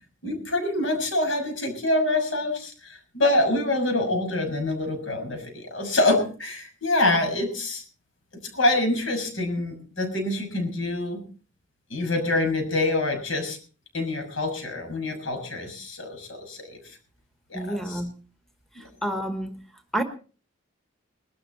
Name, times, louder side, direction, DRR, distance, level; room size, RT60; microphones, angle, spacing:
voice 1, 0.2-7.8 8.5-11.2 11.9-13.6 13.9-16.8 17.5-18.0, left 2 dB, 75° left, 4 dB, 6.4 m, -26 dB
voice 2, 17.5-18.1 18.7-19.6 19.9-20.0, right 1 dB, ahead, 8 dB, 1.2 m, -29 dB
21.0 x 13.0 x 4.2 m, 0.38 s
head